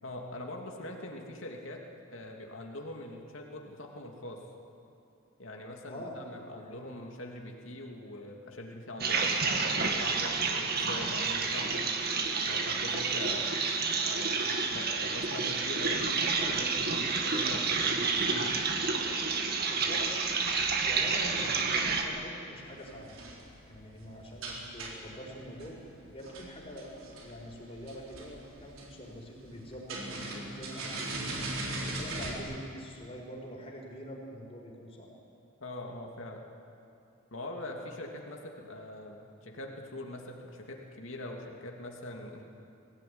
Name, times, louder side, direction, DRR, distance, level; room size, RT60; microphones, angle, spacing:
voice 1, 0.0-1.8 2.1-4.4 5.4-11.8 12.4-13.6 14.0-16.1 16.4-18.6 35.6-36.4 37.3-42.4, left 1 dB, 70° left, 1 dB, 2.7 m, -43 dB
voice 2, 5.9-6.2 6.5-6.9 19.7-20.1 20.8-23.2 23.7-25.8 26.1-35.1, equal, 30° left, -1 dB, 4.7 m, -44 dB
sound 1, 9.0-22.0, right 4 dB, 50° right, 2.1 m, -29 dB
sound 2, 22.6-32.4, right 2 dB, 80° right, 4.1 m, -41 dB
21.5 x 17.0 x 9.6 m, 2.7 s
head